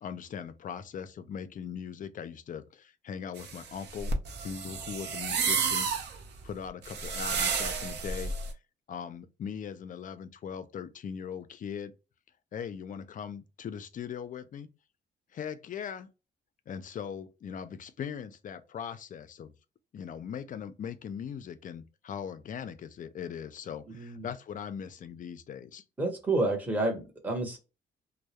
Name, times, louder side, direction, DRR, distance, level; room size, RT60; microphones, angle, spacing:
voice 1, 0.0-4.2 4.4-5.9 6.4-8.3 8.9-11.9 12.5-14.7 15.3-16.1 16.7-19.5 19.9-25.8, left 7 dB, 45° left, 0.4 m, -40 dB
sound 1, 3.4-8.5, right 5 dB, 65° right, 0.6 m, -31 dB
voice 2, 23.9-24.3 26.0-27.6, right 2 dB, 10° right, 0.7 m, -30 dB
2.2 x 2.0 x 2.8 m
cardioid pair, 100°, 18 cm